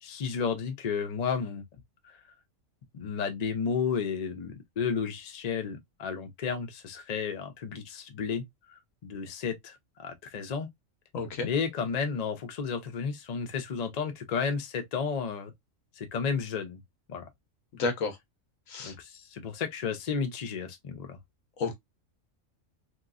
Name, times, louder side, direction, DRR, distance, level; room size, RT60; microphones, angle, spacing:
voice 1, 0.0-1.6 2.0-2.1 2.9-8.4 9.0-10.7 11.4-15.5 16.0-16.8 17.1-17.2 18.8-21.2, left 6 dB, 40° left, 0.6 m, -32 dB
voice 2, 11.1-11.5 17.7-18.2 18.7-18.9 21.6-21.8, left 4 dB, 90° left, 1.3 m, -31 dB
3.0 x 2.9 x 2.4 m
omnidirectional pair, 1.3 m